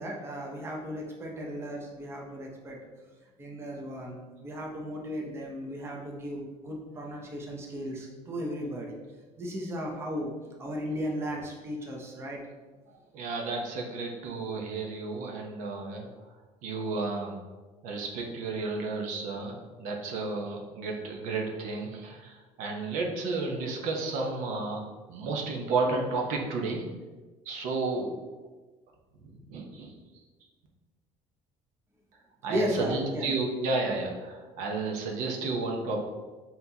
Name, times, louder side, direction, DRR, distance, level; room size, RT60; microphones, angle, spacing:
voice 1, 0.0-2.8 3.4-9.0 9.4-10.3 10.6-12.4 32.5-33.4, equal, 20° right, -1 dB, 0.6 m, -35 dB
voice 2, 13.1-16.1 16.6-17.4 17.8-26.8 27.5-28.1 29.3-29.9 32.4-36.0, right 3 dB, 75° right, 1 dB, 0.7 m, -32 dB
5.8 x 2.8 x 2.8 m, 1.3 s
cardioid pair, 155°, 13 cm